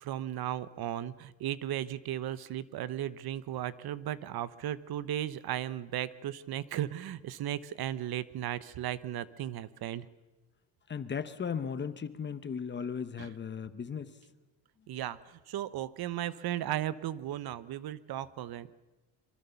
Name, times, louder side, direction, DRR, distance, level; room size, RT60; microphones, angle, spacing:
voice 1, 0.0-10.1 13.2-13.3 14.9-18.7, right 12 dB, 55° right, 17 dB, 0.9 m, -36 dB
voice 2, 10.9-14.2, left 6 dB, 25° left, 12 dB, 0.8 m, -36 dB
26.0 x 24.0 x 6.9 m, 1.1 s
cardioid pair, 170°, 44 cm